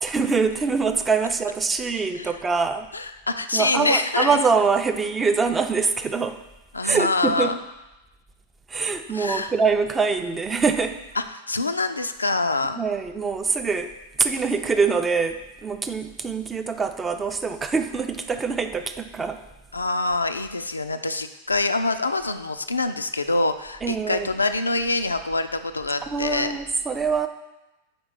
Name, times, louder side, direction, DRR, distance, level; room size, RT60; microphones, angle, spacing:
voice 1, 0.0-2.9 3.5-6.4 6.8-7.6 8.7-11.0 12.8-19.4 23.8-24.3 26.1-27.3, right 5 dB, 15° right, 8 dB, 0.4 m, -24 dB
voice 2, 2.9-4.4 6.7-7.6 9.1-9.5 11.2-12.8 19.7-26.5, left 3 dB, 80° left, 8 dB, 0.3 m, -25 dB
5.1 x 4.1 x 5.9 m, 0.99 s
figure-of-eight pair, 90°, 0 cm